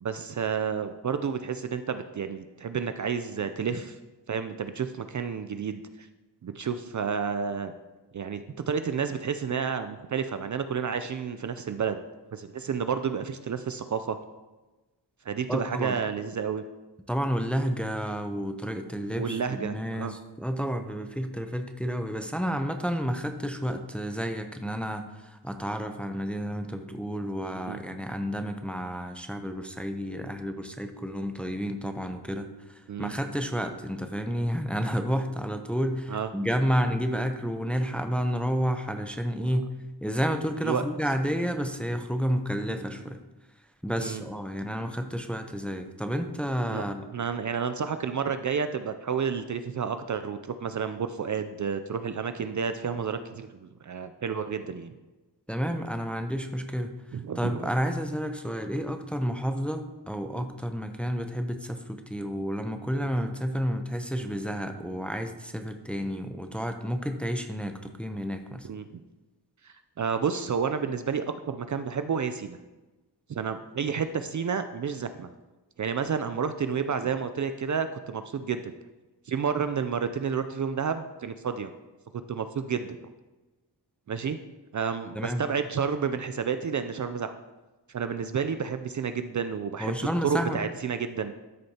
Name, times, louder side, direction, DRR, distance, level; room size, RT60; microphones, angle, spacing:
voice 1, 0.0-4.0 4.3-5.8 6.4-7.7 8.1-12.0 12.3-14.2 15.3-16.6 19.2-20.1 27.7-27.8 32.9-33.1 36.1-36.3 40.6-40.8 44.0-44.2 46.7-46.8 47.1-54.9 57.1-57.7 68.6-69.0 69.6-72.6 73.3-75.3 75.8-78.7 79.3-81.7 82.1-83.0 84.1-84.4 84.7-87.3 87.9-91.3, right 6 dB, 45° right, 9 dB, 0.4 m, -30 dB
voice 2, 15.5-16.0 17.1-39.7 40.0-43.2 43.8-47.0 55.5-56.9 57.4-68.7 85.1-85.4 89.8-90.6, equal, 5° left, 6 dB, 0.5 m, -30 dB
13.0 x 6.5 x 2.8 m, 1.1 s
wide cardioid pair, 115°, 42 cm